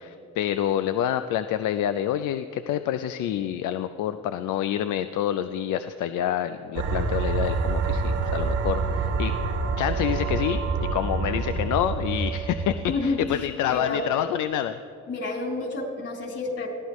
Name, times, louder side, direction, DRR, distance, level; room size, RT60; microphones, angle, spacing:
voice 1, 0.0-9.3 9.8-14.8, left 11 dB, 80° left, 10 dB, 0.5 m, -27 dB
sound 1, 6.7-13.4, right 4 dB, 80° right, 1.9 m, -27 dB
voice 2, 12.9-14.0 15.1-16.7, left 3 dB, 50° left, -2 dB, 3.8 m, -30 dB
21.0 x 15.0 x 3.1 m, 2.7 s
cardioid pair, 90°, 30 cm